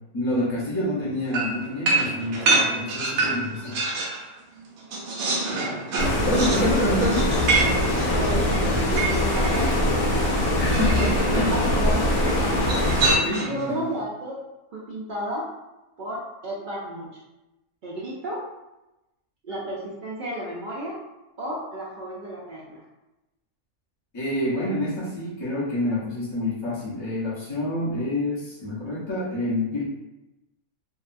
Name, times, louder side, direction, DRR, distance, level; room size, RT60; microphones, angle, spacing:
voice 1, 0.1-3.8 6.2-7.3 10.6-11.5 13.2-13.9 24.1-29.8, left 1 dB, 35° left, -9 dB, 0.4 m, -27 dB
sound 1, 1.3-4.2 4.6-9.6 10.7-11.3 12.6-13.7, right 3 dB, 65° right, 0.8 m, -26 dB
Stream, 6.0-13.2, left 1 dB, 75° left, 1.0 m, -22 dB
voice 2, 8.1-10.3 11.0-12.8 13.5-14.4 14.7-15.5 16.0-17.2 17.8-18.5 19.4-21.0 21.4-22.8, right 1 dB, 80° right, -6 dB, 0.4 m, -33 dB
2.7 x 2.2 x 2.5 m, 0.98 s
omnidirectional pair, 1.5 m